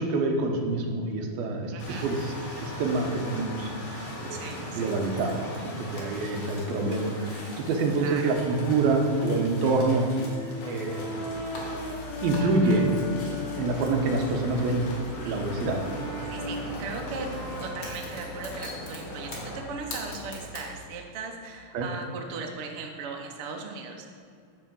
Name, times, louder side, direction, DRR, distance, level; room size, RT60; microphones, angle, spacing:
voice 1, 0.0-1.7 2.0-10.0 10.6-11.0 12.2-12.8 13.6-14.8 15.2-15.8 21.7-21.9, right 3 dB, 90° right, 2 dB, 3.0 m, -26 dB
voice 2, 1.7-2.1 4.3-4.9 8.0-8.4 12.4-12.8 15.2-15.4 16.3-17.3 17.6-24.1, right 4 dB, 75° right, 2 dB, 1.3 m, -38 dB
sound 1, 1.8-19.6, left 1 dB, 60° left, 3.4 m, -40 dB
Brass instrument, 10.1-14.1 14.6-18.7, left 3 dB, 85° left, 4.5 m, -38 dB
sound 2, 11.3-20.8, right 2 dB, 40° left, 2.5 m, -42 dB
10.5 x 4.8 x 7.7 m, 2.4 s
omnidirectional pair, 4.2 m